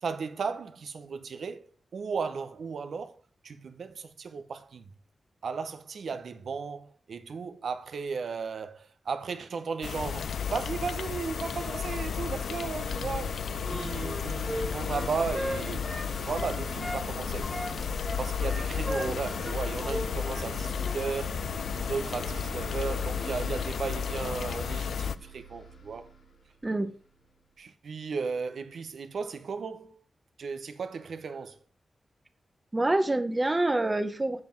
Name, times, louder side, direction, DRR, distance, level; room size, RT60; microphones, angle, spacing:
voice 1, 0.0-1.7 1.9-3.2 3.4-4.8 5.4-15.8 16.2-17.5 18.2-21.4 21.8-26.1 27.6-30.0 30.4-31.6, right 5 dB, 70° right, 0.8 m, -35 dB
sound 1, 9.8-25.2, left 7 dB, 90° left, 0.4 m, -33 dB
sound 2, 11.8-27.2, right 2 dB, 70° left, 2.2 m, -44 dB
Wind instrument woodwind instrument, 13.6-17.1 17.4-20.5 20.8-21.0, equal, 5° left, 1.0 m, -36 dB
voice 2, 32.7-34.4, right 2 dB, 20° right, 0.8 m, -26 dB
7.7 x 7.5 x 4.5 m
wide cardioid pair, 160°, 0 cm